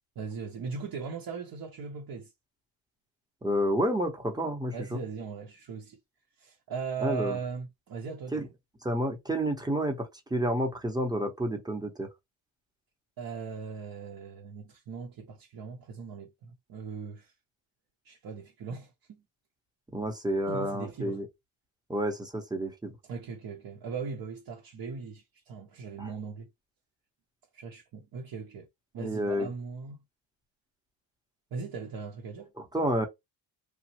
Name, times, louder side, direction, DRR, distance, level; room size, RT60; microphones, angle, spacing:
voice 1, 0.2-2.3 4.7-6.0 6.4-8.4 13.2-17.3 18.0-19.2 20.4-21.2 23.0-26.5 27.5-28.7 28.9-30.0 31.5-32.5, right 5 dB, 50° right, 0.7 m, -39 dB
voice 2, 3.4-5.0 7.0-7.4 8.3-8.5 8.8-12.1 19.9-21.3 21.9-22.9 26.0-26.1 29.0-29.5 32.6-33.1, equal, 10° right, 0.7 m, -30 dB
3.0 x 2.0 x 2.9 m
cardioid pair, 100°, 47 cm